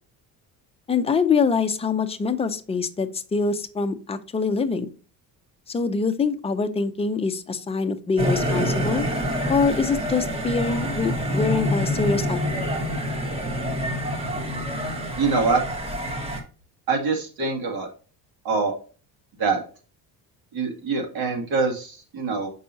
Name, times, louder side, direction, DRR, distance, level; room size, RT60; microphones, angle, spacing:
voice 1, 0.9-4.9 5.7-9.1 9.5-12.4, left 5 dB, 15° left, 7 dB, 0.5 m, -24 dB
sound 1, 8.2-16.4, equal, 15° right, 1.2 m, -26 dB
voice 2, 15.2-15.6 16.9-17.9 18.4-18.7 19.4-19.6 20.5-22.5, right 4 dB, 65° right, 1 dB, 2.2 m, -24 dB
6.7 x 5.5 x 2.7 m, 0.36 s
cardioid pair, 130°, 39 cm